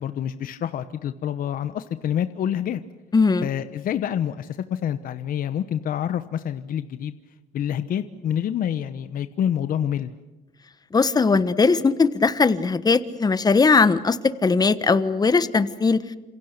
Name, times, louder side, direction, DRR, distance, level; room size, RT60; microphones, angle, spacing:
voice 1, 0.0-2.8 3.4-7.2 7.5-10.1, left 9 dB, 55° left, 11 dB, 1.1 m, -27 dB
voice 2, 3.1-3.5 10.9-14.2 14.4-16.0, left 4 dB, 25° left, 14 dB, 1.3 m, -19 dB
28.5 x 27.5 x 6.8 m, 1.1 s
cardioid pair, 110°, 17 cm